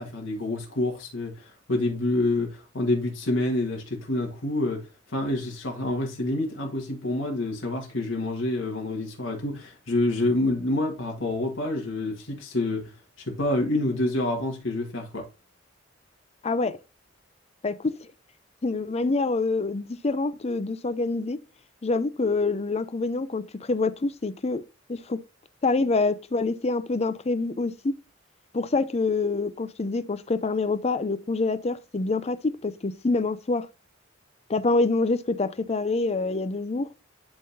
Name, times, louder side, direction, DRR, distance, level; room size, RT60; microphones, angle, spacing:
voice 1, 0.0-12.8 13.3-15.3, left 2 dB, 80° left, 1.8 m, -27 dB
voice 2, 16.4-16.8 17.6-18.1 18.6-21.4 21.8-24.6 24.9-25.2 25.6-27.9 28.5-32.4 32.6-33.7 34.5-36.9, left 3 dB, 35° left, 0.5 m, -26 dB
11.0 x 3.7 x 2.7 m
head